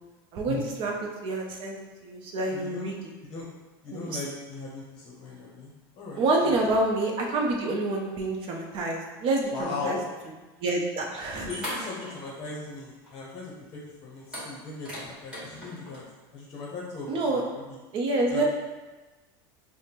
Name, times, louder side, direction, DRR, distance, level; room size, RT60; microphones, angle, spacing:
voice 1, 0.3-3.0 3.9-4.2 6.2-10.0 10.6-11.5 17.1-17.4 17.9-18.4, right 2 dB, 45° right, 0 dB, 0.7 m, -27 dB
voice 2, 2.5-2.9 3.2-3.5 3.8-6.6 9.5-10.0 11.4-16.0 16.3-17.8 18.3-18.4, left 3 dB, 35° left, -3 dB, 0.8 m, -38 dB
sound 1, 10.9-11.0 11.3-12.7 13.0-13.1 14.2-16.0, equal, 10° right, 1.5 m, -38 dB
3.4 x 2.1 x 4.3 m, 1.2 s
supercardioid pair, 135°, 12 cm